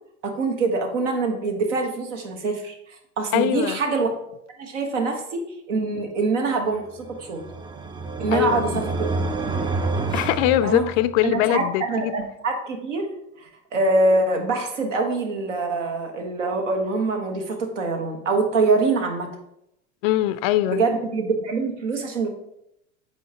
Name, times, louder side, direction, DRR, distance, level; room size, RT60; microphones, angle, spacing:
voice 1, 0.2-4.1 4.6-7.4 8.2-9.1 10.6-10.9 11.2-13.1 13.4-19.3 20.7-22.3, right 3 dB, 70° right, 1.4 m, -24 dB
voice 2, 3.3-3.8 8.3-8.8 10.1-12.1 20.0-20.8, left 14 dB, 50° left, 0.5 m, -22 dB
sound 1, 7.0-11.3, right 3 dB, 15° right, 0.4 m, -28 dB
7.7 x 4.9 x 2.9 m
figure-of-eight pair, 75°, 38 cm